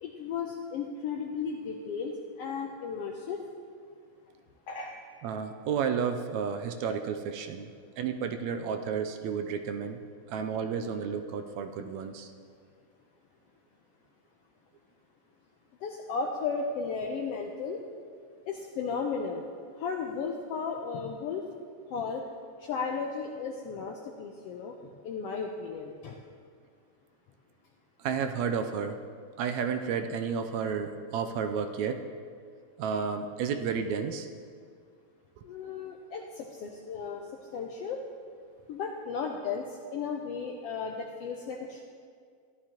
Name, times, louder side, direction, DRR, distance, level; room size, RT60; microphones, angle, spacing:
voice 1, 0.0-3.4 4.7-5.0 15.8-17.8 18.5-19.4 19.8-21.5 21.9-22.2 22.6-24.7 25.0-26.2 35.4-37.3 37.5-38.0 38.7-41.8, left 5 dB, 80° left, 1 dB, 1.4 m, -35 dB
voice 2, 5.2-10.0 10.3-12.3 28.0-29.0 29.4-32.0 32.8-34.3, right 6 dB, 80° right, 6 dB, 1.8 m, -32 dB
14.5 x 11.5 x 2.9 m, 2.1 s
omnidirectional pair, 3.4 m